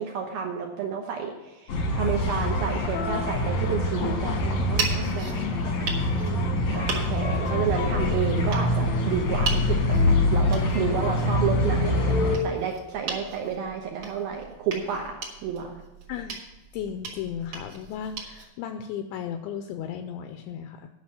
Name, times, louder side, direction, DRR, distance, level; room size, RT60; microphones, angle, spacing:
voice 1, 0.0-5.3 6.3-15.1 15.4-15.8, right 7 dB, 80° right, 1 dB, 2.2 m, -31 dB
sound 1, 1.7-12.4, left 1 dB, 70° left, 1.6 m, -25 dB
sound 2, 4.6-18.4, right 4 dB, 60° right, 1.7 m, -38 dB
voice 2, 16.1-16.4 16.7-20.9, left 8 dB, 85° left, 8 dB, 2.6 m, -35 dB
10.5 x 6.1 x 7.3 m, 1.1 s
omnidirectional pair, 5.6 m